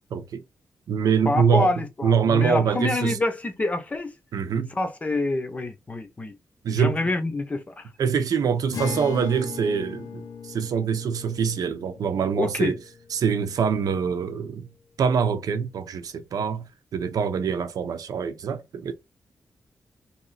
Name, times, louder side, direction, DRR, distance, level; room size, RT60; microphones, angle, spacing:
voice 1, 0.1-0.4 0.9-1.7 2.0-3.2 4.3-4.7 6.6-7.0 8.0-12.8 13.1-14.7 15.0-18.9, right 6 dB, 80° right, 0.7 m, -24 dB
voice 2, 1.3-4.1 4.8-6.4 6.8-7.8 12.4-12.8, left 2 dB, 20° left, 0.7 m, -26 dB
Acoustic guitar, 8.7-14.2, left 8 dB, 85° left, 0.6 m, -39 dB
3.2 x 2.9 x 3.9 m
wide cardioid pair, 170°, 6 cm